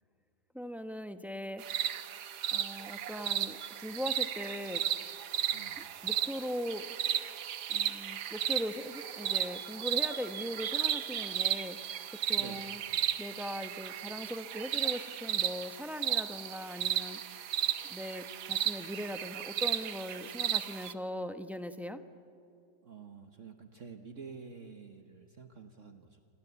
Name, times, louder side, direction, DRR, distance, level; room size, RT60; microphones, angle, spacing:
voice 1, 0.5-1.6 2.5-4.8 5.8-6.8 7.7-11.8 12.3-12.8 13.2-17.2 17.9-22.0, equal, ahead, 8 dB, 0.7 m, -40 dB
sound 1, 1.6-20.9, right 10 dB, 75° right, 1.5 m, -34 dB
voice 2, 5.5-5.9 12.4-12.7 22.8-26.2, right 5 dB, 50° right, 6 dB, 1.5 m, -49 dB
28.0 x 26.0 x 8.3 m, 2.6 s
omnidirectional pair, 1.8 m